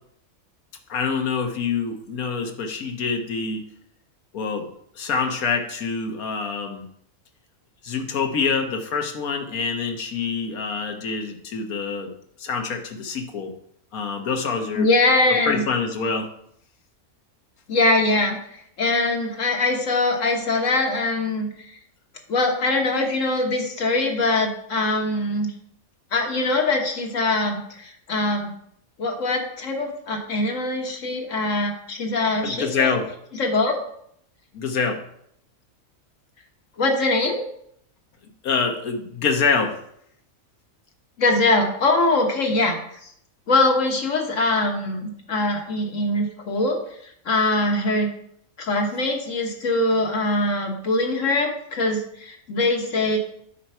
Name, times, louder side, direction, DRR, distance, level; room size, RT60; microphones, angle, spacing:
voice 1, 0.9-3.6 4.3-4.7 5.0-6.8 7.8-12.1 12.4-13.5 13.9-14.9 15.5-16.3 32.4-33.1 34.5-35.0 38.4-39.7, left 5 dB, 90° left, 4 dB, 1.5 m, -25 dB
voice 2, 14.7-15.6 17.7-21.8 22.3-25.5 26.1-28.5 29.0-32.9 33.3-33.8 36.8-37.4 41.2-43.0 43.5-46.8 47.0-48.1 48.6-53.2, left 2 dB, 65° left, 2 dB, 1.6 m, -22 dB
8.5 x 4.6 x 5.5 m, 0.69 s
omnidirectional pair, 1.5 m